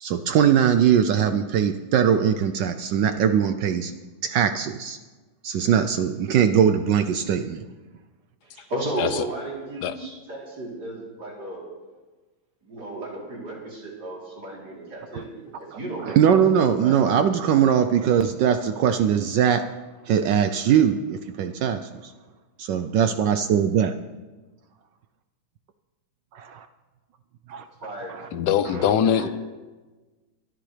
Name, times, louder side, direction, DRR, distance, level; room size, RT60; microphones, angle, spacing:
voice 1, 0.0-3.9 4.2-5.0 5.4-7.7 15.1-15.2 16.0-19.7 20.1-22.1 22.6-23.9 26.3-26.7 27.5-27.6 28.1-28.3 28.7-28.9, right 8 dB, 70° right, 9 dB, 1.2 m, -21 dB
voice 2, 8.4-11.6 12.6-16.4 16.8-17.0 27.8-28.9 29.2-29.3, right 2 dB, 55° right, -4 dB, 4.1 m, -34 dB
voice 3, 28.3-29.3, left 9 dB, 65° left, 13 dB, 1.1 m, -22 dB
24.0 x 11.5 x 3.3 m, 1.3 s
omnidirectional pair, 2.2 m